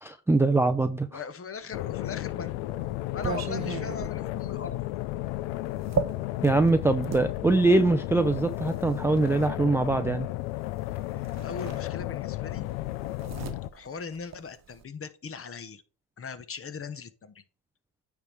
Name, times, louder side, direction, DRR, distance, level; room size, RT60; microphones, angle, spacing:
voice 1, 0.0-1.2 6.4-10.3, right 2 dB, 5° right, 9 dB, 0.4 m, -23 dB
voice 2, 1.1-2.6 3.1-4.8 11.1-12.7 13.7-15.8 16.2-17.4, left 5 dB, 30° left, 12 dB, 1.0 m, -39 dB
sound 1, 1.7-13.7, left 17 dB, 85° left, 0.6 m, -33 dB
sound 2, 2.0-7.3 8.2-9.5 10.8-10.9 11.2-12.3 12.6-14.8, right 6 dB, 35° right, 1.1 m, -36 dB
9.4 x 3.6 x 4.5 m, 0.38 s
supercardioid pair, 90°, 45 cm